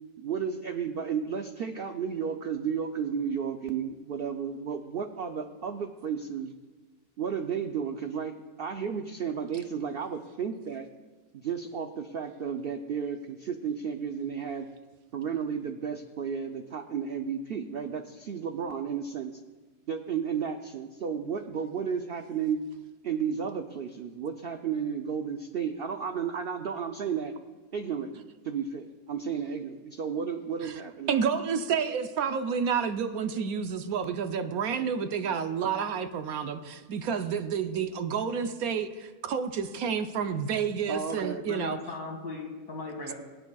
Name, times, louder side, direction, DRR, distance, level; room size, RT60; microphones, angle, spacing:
voice 1, 0.2-6.5 7.2-10.9 11.3-14.7 15.1-19.4 19.9-22.6 23.0-27.3 27.7-31.1 40.9-41.4, right 7 dB, 85° right, 6 dB, 0.5 m, -33 dB
voice 2, 31.1-41.8, right 6 dB, 70° right, 8 dB, 1.1 m, -30 dB
voice 3, 41.5-43.1, left 3 dB, 70° left, 0 dB, 2.7 m, -38 dB
21.5 x 9.7 x 2.3 m, 1.3 s
omnidirectional pair, 1.7 m